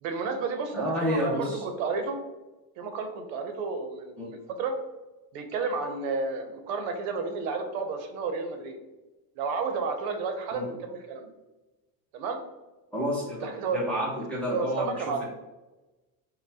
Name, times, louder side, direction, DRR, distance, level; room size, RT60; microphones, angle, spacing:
voice 1, 0.0-2.2 2.8-4.7 5.3-8.8 9.4-11.3 12.1-12.4 13.4-13.8 14.5-15.3, right 4 dB, 70° right, 6 dB, 0.7 m, -31 dB
voice 2, 0.7-1.6 4.2-4.3 10.5-10.7 12.9-15.3, equal, 5° left, -8 dB, 0.6 m, -30 dB
5.3 x 2.2 x 2.7 m, 1.1 s
cardioid pair, 170°, 43 cm